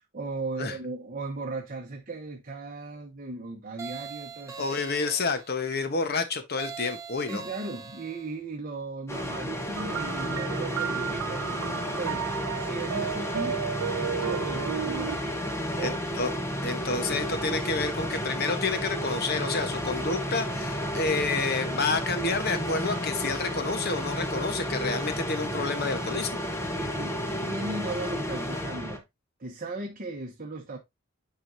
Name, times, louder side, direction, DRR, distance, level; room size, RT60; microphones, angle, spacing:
voice 1, 0.0-4.8 7.3-13.6 13.9-15.2 15.8-16.0 26.7-27.2 27.4-29.0 29.4-30.8, right 2 dB, 40° right, 0.9 m, -37 dB
sound 1, 3.8-5.5 6.6-8.4, right 6 dB, 15° right, 1.3 m, -41 dB
voice 2, 4.6-7.4 15.8-16.3 16.6-26.4, left 4 dB, 45° left, 1.1 m, -29 dB
sound 2, 9.1-29.0, equal, 10° left, 1.0 m, -32 dB
sound 3, 9.8-15.2, right 8 dB, 85° right, 0.4 m, -33 dB
9.1 x 5.0 x 2.6 m
head